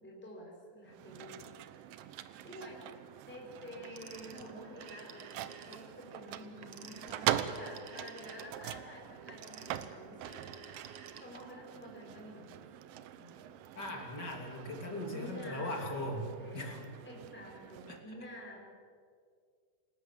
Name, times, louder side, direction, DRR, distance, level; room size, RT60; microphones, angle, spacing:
voice 1, 0.0-1.5 1.9-2.9 3.3-5.2 5.6-12.5 13.2-13.5 15.1-16.7 17.0-18.6, equal, 5° left, -1 dB, 4.5 m, -50 dB
sound 1, 0.9-18.0, right 11 dB, 80° right, 2.7 m, -43 dB
Telephone, 3.8-5.9 6.5-11.6, right 6 dB, 55° right, 1.9 m, -51 dB
voice 2, 13.7-16.3 16.5-16.8 17.9-18.0, left 1 dB, 30° left, 2 dB, 3.2 m, -39 dB
27.5 x 18.5 x 7.5 m, 2.1 s
omnidirectional pair, 4.0 m